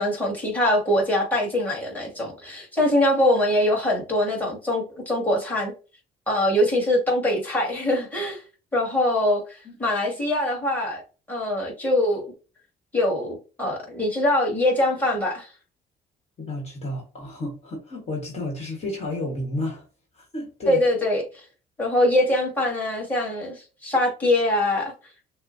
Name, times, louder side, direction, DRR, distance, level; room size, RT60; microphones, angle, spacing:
voice 1, 0.0-5.7 6.3-8.4 8.7-11.0 11.3-12.2 12.9-15.5 20.7-21.4 21.8-24.9, left 1 dB, 10° left, 2.1 m, -23 dB
voice 2, 16.4-19.8 20.1-20.8, left 1 dB, 40° left, 1.6 m, -31 dB
6.4 x 2.2 x 2.7 m
cardioid pair, 110°, 17 cm